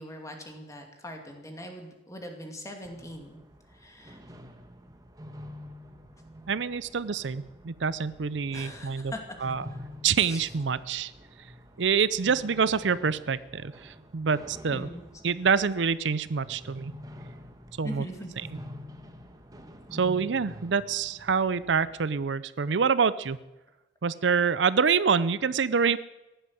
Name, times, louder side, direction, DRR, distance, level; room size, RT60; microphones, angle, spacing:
voice 1, 0.0-3.4 3.7-4.2 8.5-9.2 9.7-9.8 10.2-10.5 14.7-15.0 17.8-18.6, left 1 dB, 20° left, 3 dB, 2.5 m, -41 dB
sound 1, 2.8-22.1, equal, 20° right, 1.4 m, -47 dB
voice 2, 6.5-9.1 9.4-9.6 10.0-11.1 11.8-14.9 15.2-16.9 17.8-18.0 19.9-23.4 24.0-26.0, right 6 dB, 80° right, 16 dB, 0.6 m, -26 dB
15.0 x 11.5 x 7.6 m, 1.0 s
head